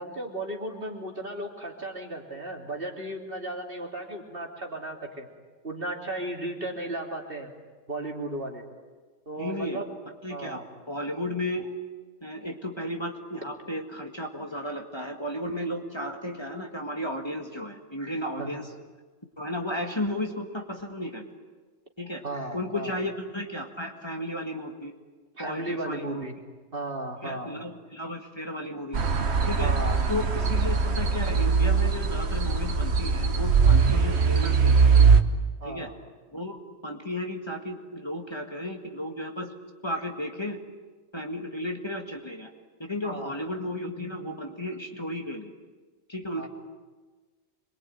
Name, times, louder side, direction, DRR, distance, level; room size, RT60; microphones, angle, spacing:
voice 1, 0.0-5.3 5.6-7.5 7.9-8.6 9.2-10.0 10.3-10.7 18.4-18.5 22.2-23.0 25.3-26.3 26.7-27.6 29.6-30.0 35.6-36.0 43.0-43.4 46.4-46.5, right 1 dB, 50° right, 1 dB, 3.3 m, -35 dB
voice 2, 9.4-9.8 10.2-10.6 10.9-11.7 12.2-18.7 19.4-21.2 22.0-24.9 25.4-26.2 27.2-29.0 29.5-29.7 30.1-34.9 35.6-35.9 36.3-39.5 39.8-40.6 41.1-42.5 42.8-45.5 46.1-46.5, left 1 dB, 20° left, 2 dB, 1.9 m, -34 dB
sound 1, 28.9-35.2, right 5 dB, 65° right, 1.4 m, -21 dB
26.5 x 22.5 x 9.4 m, 1.3 s
omnidirectional pair, 1.2 m